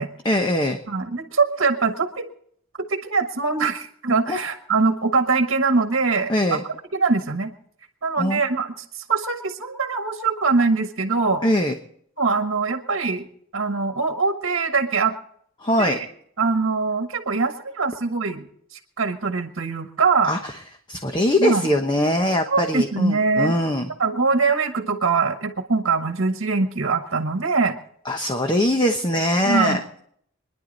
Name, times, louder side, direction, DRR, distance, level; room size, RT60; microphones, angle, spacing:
voice 1, 0.2-0.8 4.3-4.4 6.3-6.6 8.2-8.4 11.4-11.7 15.6-16.0 20.2-20.6 20.9-23.9 28.0-30.0, left 1 dB, 20° left, 4 dB, 1.0 m, -22 dB
voice 2, 0.9-2.3 2.8-6.3 6.9-7.5 8.0-11.4 12.2-13.3 13.5-15.2 15.8-16.1 16.4-20.3 21.4-21.7 22.5-23.5 24.0-27.7 29.4-29.8, right 4 dB, 65° right, 6 dB, 1.3 m, -22 dB
26.5 x 10.5 x 4.0 m, 0.67 s
head